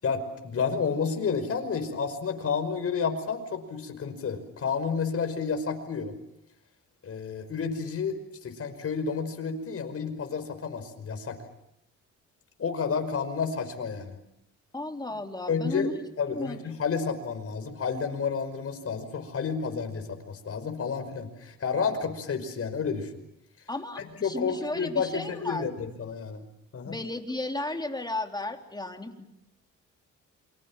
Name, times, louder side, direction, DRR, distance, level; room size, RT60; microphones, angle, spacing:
voice 1, 0.0-6.2 7.0-8.2 8.4-11.4 12.6-14.2 15.5-15.9 16.2-23.1 24.0-26.4 26.7-27.0, left 5 dB, 50° left, 7 dB, 5.4 m, -30 dB
voice 2, 14.7-15.9 16.3-16.6 23.7-25.7 26.8-29.3, left 2 dB, 15° left, 4 dB, 3.3 m, -34 dB
28.5 x 25.0 x 7.4 m, 0.82 s
cardioid pair, 90°, 30 cm